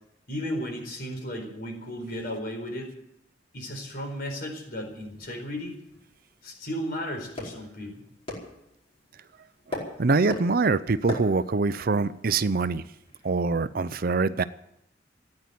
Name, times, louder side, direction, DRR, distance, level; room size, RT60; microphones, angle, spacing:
voice 1, 0.3-2.9 3.5-5.8 6.4-8.1, equal, 55° left, 3 dB, 4.5 m, -34 dB
sound 1, 4.8-13.7, left 2 dB, 30° left, 4.7 m, -42 dB
voice 2, 10.0-12.8 13.2-14.4, right 3 dB, 50° right, 14 dB, 0.6 m, -24 dB
15.0 x 9.7 x 9.4 m, 0.79 s
head